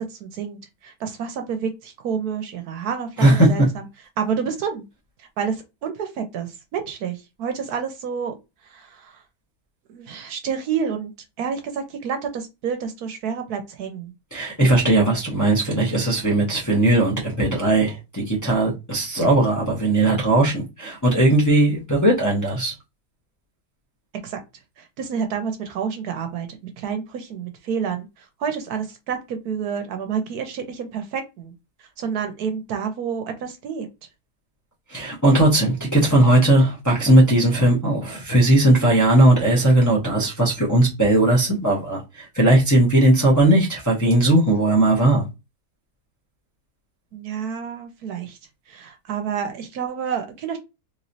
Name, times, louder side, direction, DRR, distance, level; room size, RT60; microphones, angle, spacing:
voice 1, 0.0-3.9 4.2-4.9 5.2-8.3 8.6-9.2 9.9-11.1 11.4-14.1 24.2-24.4 24.8-31.5 31.8-33.9 47.1-48.4 48.7-50.6, right 7 dB, 75° right, 1.2 m, -29 dB
voice 2, 14.3-22.7 34.9-45.2, right 1 dB, 15° left, 0.9 m, -18 dB
3.5 x 3.1 x 2.7 m
omnidirectional pair, 1.7 m